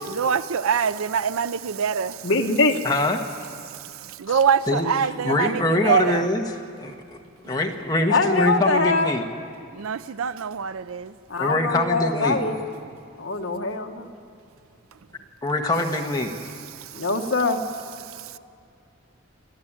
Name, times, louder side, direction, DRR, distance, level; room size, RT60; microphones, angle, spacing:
voice 1, 0.1-2.3 3.6-6.3 7.5-7.6 9.7-11.2 16.7-17.1 18.0-18.4, right 7 dB, 75° right, 0.5 m, -25 dB
voice 2, 2.2-2.8 8.1-9.1 11.3-12.6 13.2-14.1 16.9-17.6, left 3 dB, 60° left, 1.4 m, -23 dB
voice 3, 2.8-3.2 4.7-4.9 5.2-6.4 6.8-6.9 7.4-9.2 11.4-12.4 15.4-16.6, left 2 dB, 20° left, 1.5 m, -23 dB
28.5 x 12.0 x 8.9 m
head